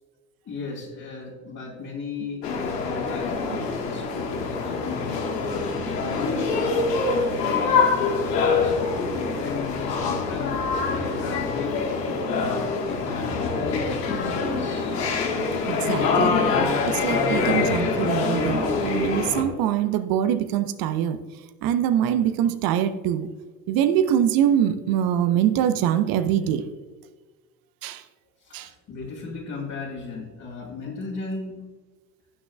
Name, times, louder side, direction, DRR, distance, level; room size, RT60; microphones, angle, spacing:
voice 1, 0.4-8.9 9.4-11.8 12.3-15.0 28.4-31.6, left 4 dB, 40° left, -3 dB, 2.7 m, -37 dB
sound 1, 2.4-19.4, left 4 dB, 75° left, 1.6 m, -25 dB
voice 2, 15.7-16.4 16.9-21.2 21.6-23.3 23.7-26.6 27.8-28.0 28.5-28.7, right 10 dB, 45° right, 12 dB, 0.9 m, -23 dB
17.0 x 6.3 x 2.3 m, 1.3 s
figure-of-eight pair, 75°, 49 cm